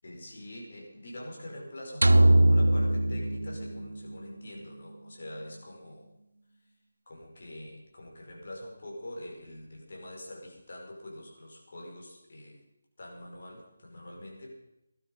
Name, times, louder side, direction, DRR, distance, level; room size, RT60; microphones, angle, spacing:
voice 1, 0.0-6.1 7.1-12.6 13.0-14.5, left 1 dB, 60° left, -1 dB, 5.3 m, -44 dB
sound 1, 2.0-4.3, right 1 dB, 85° right, 0.8 m, -22 dB
17.0 x 12.0 x 5.5 m, 0.88 s
figure-of-eight pair, 160°, 0 cm